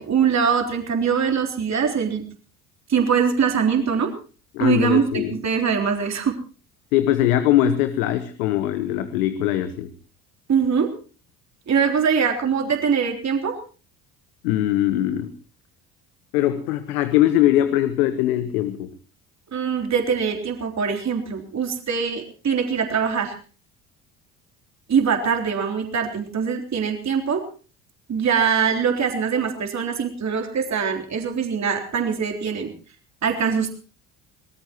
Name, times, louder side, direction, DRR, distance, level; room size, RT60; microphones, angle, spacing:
voice 1, 0.0-2.2 2.9-4.1 4.6-6.3 10.5-10.9 11.7-13.5 19.5-23.4 24.9-27.4 28.1-32.7 33.2-33.7, right 6 dB, 35° right, 3 dB, 3.6 m, -22 dB
voice 2, 4.5-5.4 6.9-9.9 14.4-15.3 16.3-18.9, left 12 dB, 75° left, 11 dB, 1.4 m, -21 dB
25.0 x 19.0 x 3.1 m, 0.37 s
hypercardioid pair, 60°, 45 cm